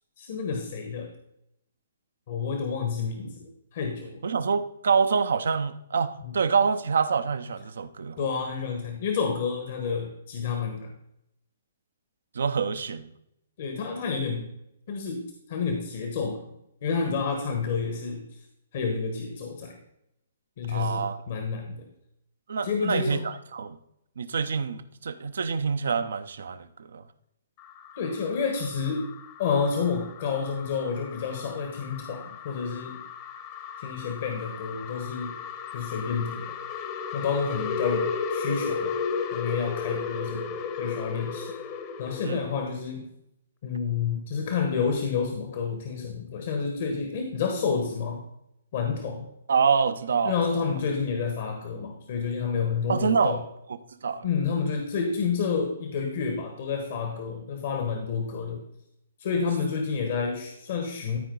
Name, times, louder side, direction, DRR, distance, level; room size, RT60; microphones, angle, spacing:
voice 1, 0.2-1.1 2.3-3.3 3.7-4.2 6.2-6.3 8.2-10.9 13.6-14.5 14.9-15.2 15.5-16.4 16.8-18.2 18.7-19.7 20.6-21.8 22.6-23.2 28.0-29.1 29.4-33.0 33.8-35.4 35.7-36.5 37.1-39.0 39.3-41.5 42.0-43.1 43.6-48.2 48.7-49.3 50.2-53.4 54.2-58.6 59.2-61.2, left 5 dB, 55° left, 1.4 m, -29 dB
voice 2, 4.2-8.2 12.3-13.1 20.7-21.2 22.5-23.8 24.2-27.0 42.2-42.4 49.5-50.3 52.9-53.4 54.0-54.3, right 5 dB, 70° right, 0.7 m, -26 dB
sound 1, 27.6-42.7, left 6 dB, 35° left, 1.1 m, -35 dB
13.5 x 4.6 x 4.0 m
hypercardioid pair, 130°, 0 cm